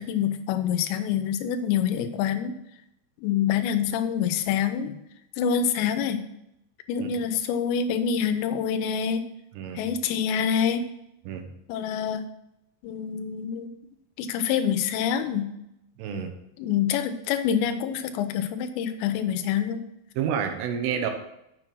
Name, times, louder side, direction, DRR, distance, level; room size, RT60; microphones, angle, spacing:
voice 1, 0.0-2.6 3.2-5.0 5.4-6.2 6.9-9.3 9.8-10.8 11.7-12.2 12.8-13.7 14.2-15.5 16.6-19.8, left 8 dB, 80° left, 8 dB, 2.9 m, -26 dB
voice 2, 16.0-16.4 20.2-21.1, right 8 dB, 85° right, 6 dB, 3.6 m, -29 dB
7.8 x 6.9 x 6.1 m, 0.82 s
omnidirectional pair, 5.5 m